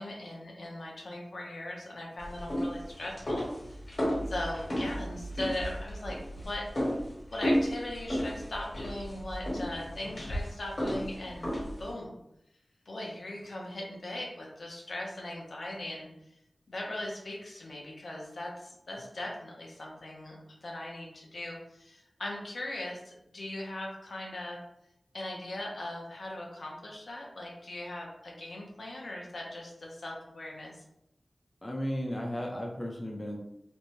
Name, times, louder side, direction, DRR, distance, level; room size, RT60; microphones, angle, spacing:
voice 1, 0.0-3.8 4.3-6.7 7.3-11.5 11.8-12.1 12.9-16.1 16.7-24.6 25.1-30.7, left 1 dB, 75° left, -1 dB, 0.6 m, -39 dB
sound 1, 2.2-11.9, equal, 55° left, 1.3 m, -33 dB
voice 2, 31.6-33.4, equal, 25° left, -1 dB, 0.5 m, -34 dB
2.6 x 2.1 x 3.0 m, 0.81 s
wide cardioid pair, 65°, 0 cm